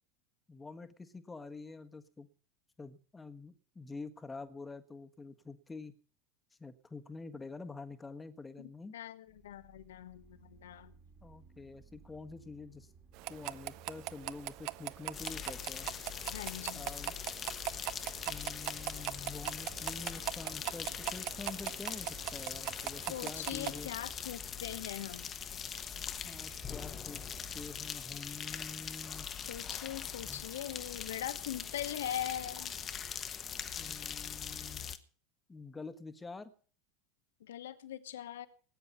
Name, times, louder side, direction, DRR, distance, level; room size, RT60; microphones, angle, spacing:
voice 1, 0.5-2.3 2.8-5.9 6.6-9.0 11.2-12.9 13.3-15.9 16.7-17.1 18.3-23.9 26.2-27.2 27.5-29.3 30.2-30.4 33.8-34.9 35.5-36.5, left 3 dB, 15° left, 1.5 m, -47 dB
voice 2, 8.6-10.9 16.3-16.9 23.1-25.3 29.5-32.7 37.4-38.5, left 11 dB, 65° left, 1.2 m, -41 dB
sound 1, 9.3-27.9, right 5 dB, 30° right, 2.4 m, -58 dB
sound 2, 13.2-23.8, right 19 dB, 50° right, 0.7 m, -41 dB
sound 3, 15.1-35.0, left 8 dB, 30° left, 1.3 m, -42 dB
19.0 x 9.7 x 5.5 m
figure-of-eight pair, 75°, 0 cm